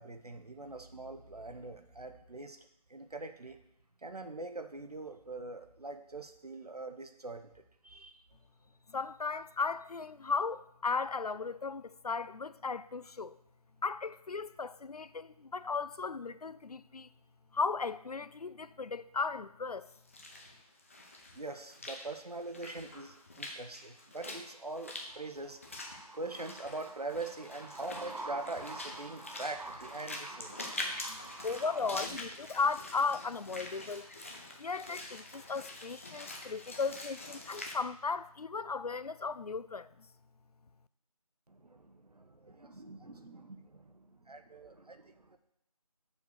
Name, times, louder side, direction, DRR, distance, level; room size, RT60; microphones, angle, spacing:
voice 1, 0.0-2.6 2.9-3.6 4.0-8.2 21.3-32.2 41.5-45.4, right 2 dB, 85° right, 1.1 m, -43 dB
voice 2, 8.9-13.4 13.8-17.1 17.5-19.9 31.1-31.2 31.4-34.1 34.6-40.1, left 4 dB, 80° left, 0.5 m, -36 dB
Walk footsteps / Splash splatter, 19.9-37.8, left 2 dB, 20° left, 0.7 m, -45 dB
7.0 x 4.4 x 6.5 m
figure-of-eight pair, 165°, 19 cm